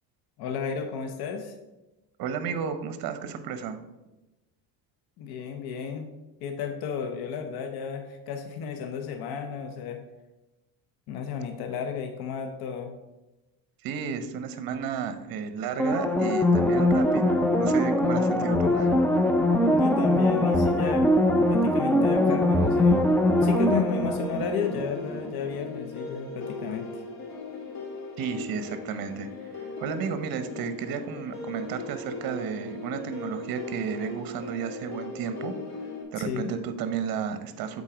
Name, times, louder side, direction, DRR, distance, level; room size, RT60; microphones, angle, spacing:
voice 1, 0.4-1.5 5.2-6.1 6.4-10.0 11.1-12.9 19.7-21.1 21.5-27.0 36.2-36.5, left 6 dB, 65° left, 5 dB, 0.9 m, -33 dB
voice 2, 2.2-3.8 13.8-18.9 28.2-29.3 29.5-35.5 36.1-37.8, right 7 dB, 60° right, 10 dB, 0.9 m, -33 dB
sound 1, 15.8-25.2 25.5-25.6, left 1 dB, 5° left, 0.4 m, -22 dB
sound 2, 21.9-36.0, left 3 dB, 40° left, 2.3 m, -39 dB
7.3 x 4.0 x 5.0 m, 1.0 s
cardioid pair, 120°, 41 cm